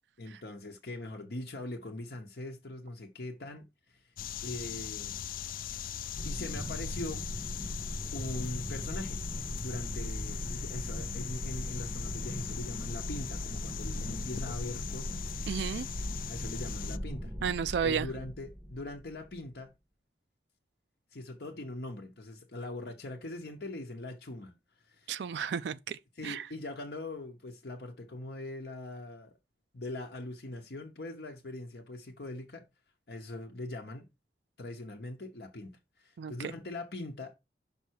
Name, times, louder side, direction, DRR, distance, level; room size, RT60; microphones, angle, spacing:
voice 1, 0.2-4.1 4.4-5.2 6.2-7.2 8.1-9.2 9.6-15.3 16.3-17.3 17.8-19.7 21.1-24.5 24.9-25.3 26.2-29.3 29.7-32.6 33.1-34.1 34.6-37.3, left 2 dB, 65° left, 0.9 m, -41 dB
sound 1, 4.2-17.0, left 9 dB, 50° left, 0.3 m, -40 dB
sound 2, 6.2-19.5, equal, 5° right, 0.5 m, -39 dB
voice 2, 15.5-15.9 17.4-18.1 25.1-26.5 36.2-36.5, right 7 dB, 80° right, 0.4 m, -33 dB
5.6 x 5.4 x 4.5 m
head